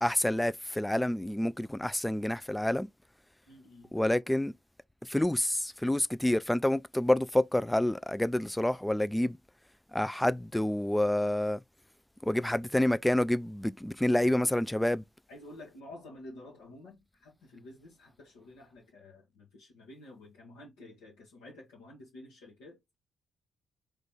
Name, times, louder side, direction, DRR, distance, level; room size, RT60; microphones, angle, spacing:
voice 1, 0.0-2.9 3.9-4.5 5.1-9.4 9.9-11.6 12.2-15.0, left 1 dB, 10° left, 0.3 m, -28 dB
voice 2, 3.5-3.9 15.3-22.8, left 1 dB, 75° left, 1.1 m, -50 dB
3.9 x 3.1 x 3.4 m
hypercardioid pair, 45°, 0 cm